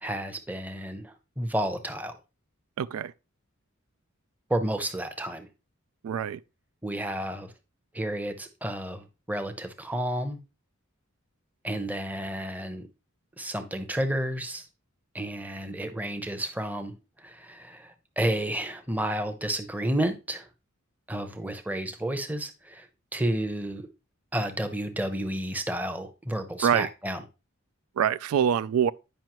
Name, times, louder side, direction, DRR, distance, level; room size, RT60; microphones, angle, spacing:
voice 1, 0.0-2.2 4.5-5.5 6.8-7.5 7.9-10.4 11.6-12.9 13.4-14.7 15.1-20.5 21.1-22.9 23.1-23.9 24.3-27.2, right 1 dB, 10° right, 0.8 m, -31 dB
voice 2, 2.8-3.1 6.0-6.4 26.6-26.9 28.0-28.9, right 8 dB, 85° right, 0.3 m, -24 dB
9.1 x 5.4 x 3.0 m
head